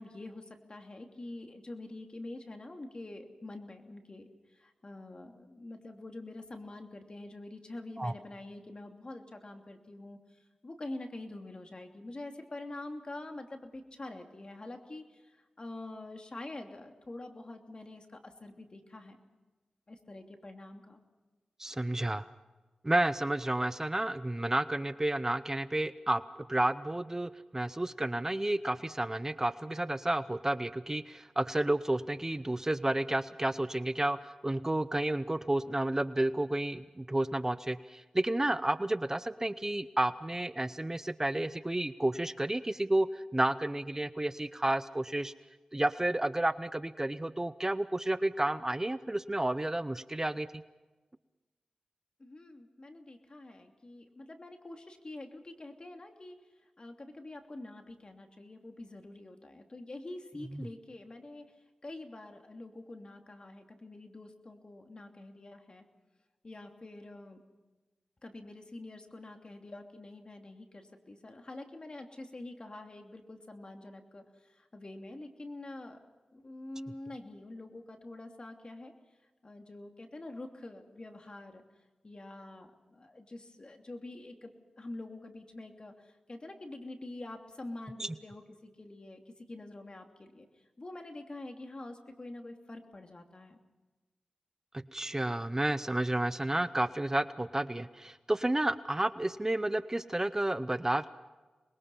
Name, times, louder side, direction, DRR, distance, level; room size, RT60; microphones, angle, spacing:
voice 1, 0.0-19.2 19.9-21.0 52.2-56.4 56.8-61.5 61.8-65.9 66.4-67.4 68.2-76.0 76.3-78.9 79.4-81.6 82.0-84.5 84.8-90.5 90.8-93.6, left 2 dB, 45° left, 4 dB, 2.9 m, -46 dB
voice 2, 21.6-22.3 22.8-26.2 26.5-45.3 45.7-50.6 60.5-60.6 88.0-88.1 94.9-101.1, right 1 dB, 20° right, 14 dB, 0.7 m, -31 dB
26.0 x 21.5 x 5.6 m, 1.2 s
cardioid pair, 50°, 2 cm